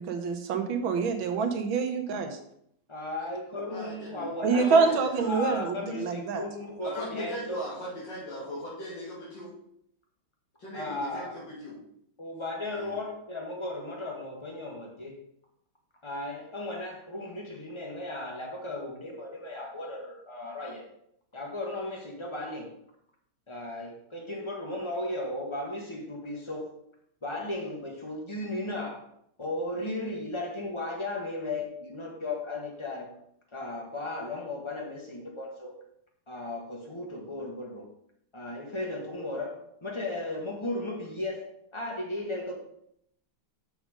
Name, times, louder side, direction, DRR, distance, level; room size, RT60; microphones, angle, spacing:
voice 1, 0.0-2.3 4.4-6.4, right 5 dB, 70° right, 5 dB, 1.8 m, -26 dB
voice 2, 2.9-4.9 5.3-7.6 10.7-11.3 12.2-15.1 16.0-20.8 21.3-22.7 23.5-26.7 27.2-29.0 29.4-33.1 33.5-35.7 36.3-37.9 38.3-42.6, left 2 dB, 15° left, 0 dB, 1.3 m, -35 dB
voice 3, 3.7-5.3 6.8-9.5 10.6-11.8 12.7-12.9, equal, 55° left, -8 dB, 3.1 m, -39 dB
6.8 x 6.4 x 5.1 m, 0.72 s
omnidirectional pair, 2.4 m